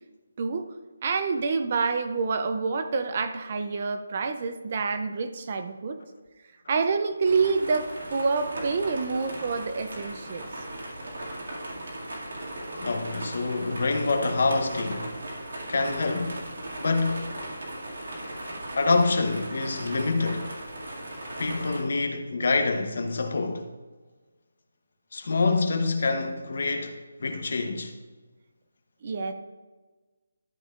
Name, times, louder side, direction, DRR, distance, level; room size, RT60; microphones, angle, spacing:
voice 1, 1.0-6.0 6.7-10.5 29.0-29.3, right 4 dB, 25° right, 0.4 m, -27 dB
sound 1, 7.3-21.8, right 1 dB, 65° right, 2.1 m, -37 dB
voice 2, 12.8-15.1 15.7-16.4 16.7-17.3 18.8-20.5 21.4-23.7 25.1-27.9, left 3 dB, 45° left, 0.8 m, -26 dB
12.5 x 6.4 x 2.4 m
hypercardioid pair, 180°, 0 cm